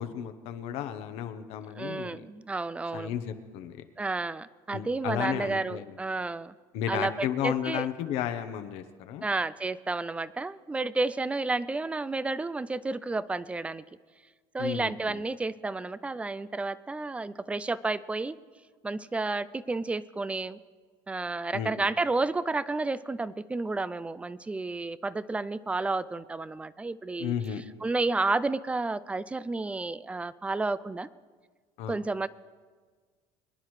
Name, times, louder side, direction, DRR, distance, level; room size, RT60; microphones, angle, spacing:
voice 1, 0.0-2.3 2.9-3.8 4.7-6.0 6.7-9.2 14.6-15.2 21.5-21.8 27.2-27.6 31.8-32.0, left 9 dB, 70° left, 9 dB, 1.0 m, -33 dB
voice 2, 1.7-3.1 4.0-6.6 6.9-7.9 9.2-13.8 14.5-18.4 18.8-20.6 21.1-27.3 27.8-31.1 31.9-32.3, right 3 dB, 10° right, 18 dB, 0.3 m, -31 dB
23.5 x 10.5 x 3.2 m, 1.5 s
cardioid pair, 120°, 11 cm